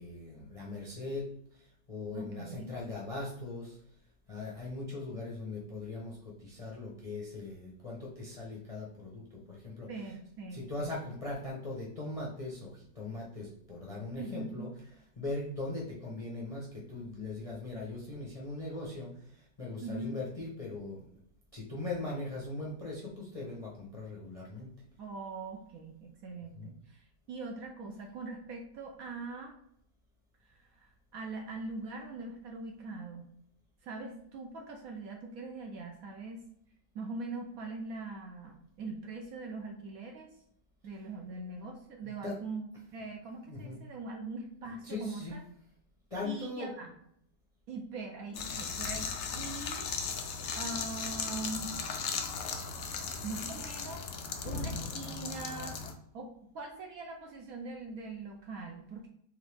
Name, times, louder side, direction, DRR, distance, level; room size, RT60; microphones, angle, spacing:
voice 1, 0.0-3.8 4.3-9.9 10.5-14.7 15.2-21.0 21.5-24.7 26.6-26.7 42.0-42.3 43.5-43.8 44.8-45.4 46.1-46.7, left 2 dB, 35° left, -4 dB, 0.5 m, -40 dB
voice 2, 2.1-2.7 9.9-10.9 14.2-14.6 19.8-20.2 25.0-29.6 30.5-33.3 33.8-36.4 36.9-40.3 40.8-45.4 46.2-46.9 47.7-49.9 50.5-51.8 53.2-54.1 54.4-56.3 56.5-59.1, right 3 dB, 65° right, 2 dB, 0.9 m, -42 dB
sound 1, 48.3-55.9, left 5 dB, 85° left, 0.6 m, -37 dB
3.6 x 3.4 x 3.3 m, 0.71 s
omnidirectional pair, 1.9 m